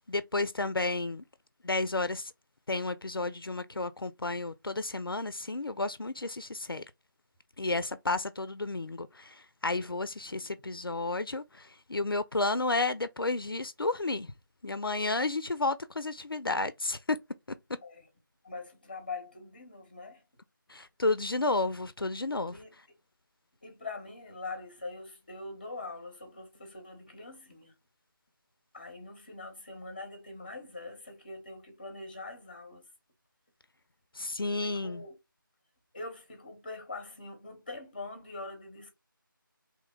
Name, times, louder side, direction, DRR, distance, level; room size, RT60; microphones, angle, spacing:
voice 1, 0.1-1.2 1.6-2.3 2.7-6.8 7.6-14.3 14.6-17.2 20.7-22.6 34.2-35.0, left 2 dB, 85° left, 0.4 m, -32 dB
voice 2, 18.4-20.2 22.5-22.8 23.6-27.7 28.7-32.8 34.6-35.2 35.9-38.9, left 3 dB, 25° left, 0.8 m, -43 dB
3.0 x 2.1 x 3.6 m
figure-of-eight pair, 165°, 12 cm